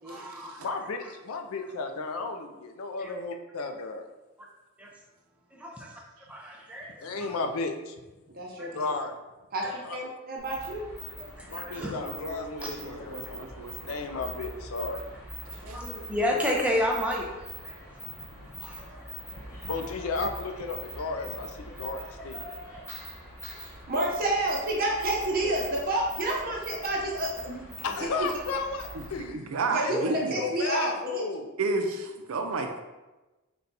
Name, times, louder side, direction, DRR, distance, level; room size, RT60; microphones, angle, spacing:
voice 1, 0.0-0.6 3.0-3.1 4.8-4.9 5.5-5.7 6.3-6.9 7.2-7.3 8.6-8.7 9.6-9.7 11.2-12.0 14.1-14.2 15.7-17.3 17.6-17.8 18.6-18.8, left 1 dB, 5° right, -2 dB, 0.5 m, -30 dB
voice 2, 0.6-4.1 7.0-8.0 8.7-9.2 9.8-10.0 11.5-13.5 13.8-15.0 18.1-18.5 19.5-22.4 27.8-31.5, left 3 dB, 70° left, 5 dB, 0.4 m, -34 dB
voice 3, 8.3-8.9 9.5-10.9 11.5-11.6 15.4-16.0 23.6-27.8 28.2-28.3 29.7-31.2, right 1 dB, 40° right, -2 dB, 0.8 m, -30 dB
sound 1, 10.4-29.3, equal, 10° left, 0.9 m, -43 dB
voice 4, 11.8-14.0 15.7-15.8 29.0-29.1 29.3-30.4 31.6-32.8, right 3 dB, 70° right, 5 dB, 0.5 m, -32 dB
4.0 x 2.3 x 4.0 m, 1.1 s
head